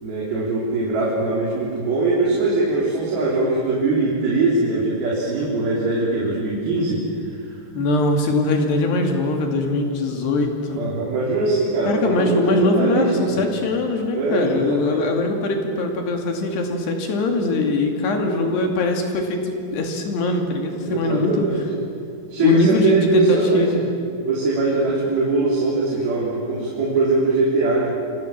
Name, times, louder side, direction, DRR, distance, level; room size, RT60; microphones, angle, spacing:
voice 1, 0.0-7.6 10.8-13.4 14.1-15.0 20.8-21.6 22.3-23.8 24.2-28.0, right 3 dB, 50° right, -5 dB, 5.2 m, -21 dB
voice 2, 7.7-10.8 11.9-21.5 22.4-23.8, left 2 dB, 60° left, 3 dB, 4.1 m, -21 dB
28.5 x 25.0 x 7.4 m, 2.5 s
omnidirectional pair, 5.9 m